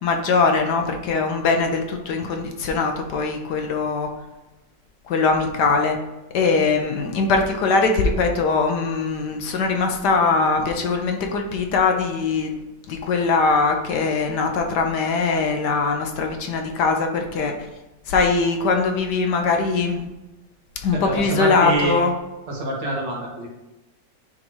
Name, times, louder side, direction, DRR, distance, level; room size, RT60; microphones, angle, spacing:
voice 1, 0.0-4.1 5.0-6.0 6.3-12.6 12.9-17.5 18.1-20.0 20.8-22.1, left 4 dB, 70° left, 4 dB, 1.2 m, -21 dB
voice 2, 20.9-22.0 22.5-23.5, right 2 dB, 70° right, -3 dB, 2.2 m, -25 dB
9.8 x 3.8 x 3.1 m, 1.0 s
omnidirectional pair, 2.0 m